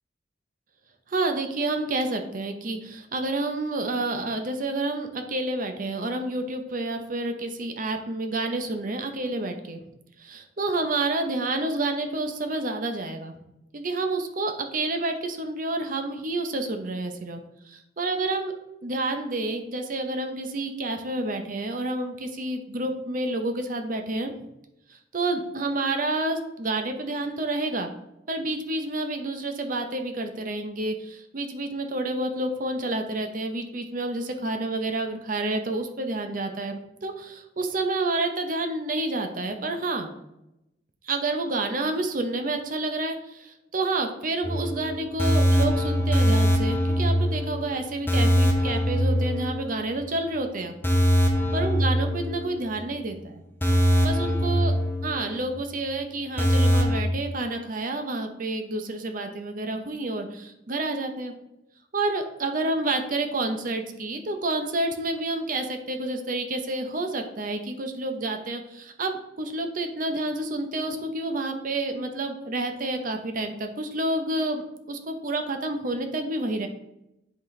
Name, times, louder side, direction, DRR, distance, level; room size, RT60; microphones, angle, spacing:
voice 1, 1.1-9.8 10.2-13.3 13.7-17.4 17.7-18.5 18.8-24.3 24.9-27.9 28.3-40.1 41.0-50.8 51.5-53.4 54.0-54.7 55.0-61.3 61.9-76.7, right 2 dB, 45° right, 5 dB, 0.7 m, -29 dB
sound 1, 44.4-50.0 50.3-50.4 50.8-52.8 53.1-53.2 53.6-55.5 55.8-55.9 56.4-57.0, equal, 10° left, 0.7 m, -23 dB
10.0 x 4.0 x 3.2 m, 0.87 s
head